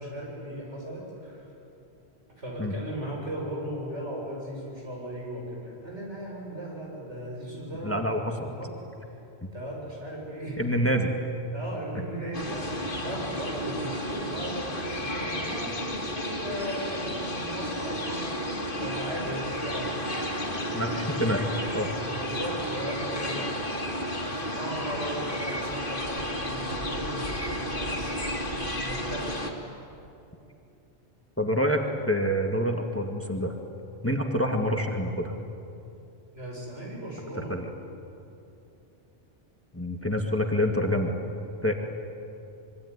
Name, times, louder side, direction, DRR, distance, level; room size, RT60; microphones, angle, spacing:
voice 1, 0.0-1.5 2.4-9.2 9.5-10.8 11.5-18.5 18.8-20.1 22.0-23.9 24.2-28.5 28.8-29.4 36.3-37.6, equal, 85° right, -2 dB, 7.6 m, -37 dB
voice 2, 7.8-8.3 10.6-11.1 20.7-21.4 21.7-21.9 31.4-33.6 34.0-35.3 37.5-37.7 39.7-41.2 41.6-41.7, equal, 10° left, 3 dB, 1.9 m, -26 dB
sound 1, 12.3-29.5, equal, 50° left, 2.7 m, -32 dB
25.5 x 23.5 x 9.9 m, 2.7 s
omnidirectional pair, 1.2 m